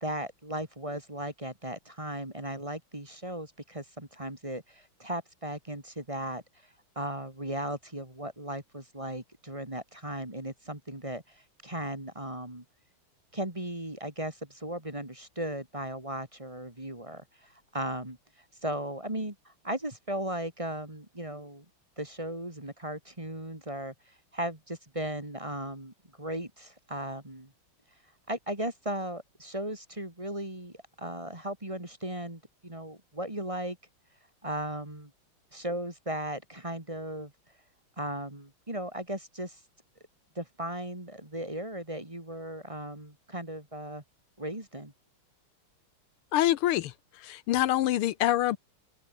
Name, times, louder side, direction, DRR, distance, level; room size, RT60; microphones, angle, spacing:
voice 1, 0.0-6.4 6.9-12.6 13.3-18.2 18.6-21.6 22.0-27.5 28.3-33.8 34.4-35.1 35.5-37.3 38.0-39.6 40.3-44.0 44.4-44.9, right 1 dB, 15° right, 2.9 m, -37 dB
voice 2, 46.3-48.6, left 13 dB, 85° left, 1.7 m, -26 dB
open air
omnidirectional pair, 2.3 m